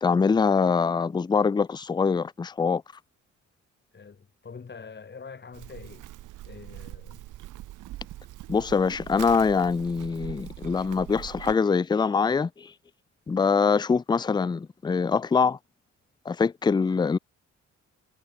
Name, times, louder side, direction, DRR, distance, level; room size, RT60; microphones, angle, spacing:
voice 1, 0.0-2.8 8.5-12.7 13.3-15.6 16.3-17.2, left 5 dB, 15° left, 0.4 m, -24 dB
voice 2, 3.9-6.1 6.4-7.2, left 5 dB, 35° left, 6.5 m, -44 dB
Livestock farm animals working animals, 5.5-11.6, right 15 dB, 85° right, 3.3 m, -42 dB
cardioid pair, 90°, 30 cm